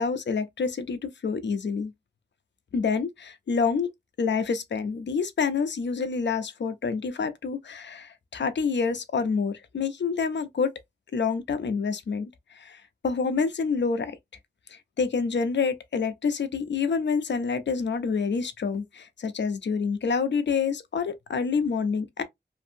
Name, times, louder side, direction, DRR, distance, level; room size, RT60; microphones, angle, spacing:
voice 1, 0.0-1.9 2.7-3.9 4.2-10.7 11.1-14.2 14.7-22.2, left 5 dB, 85° left, 0.5 m, -27 dB
2.6 x 2.5 x 2.6 m
wide cardioid pair, 60°, 18 cm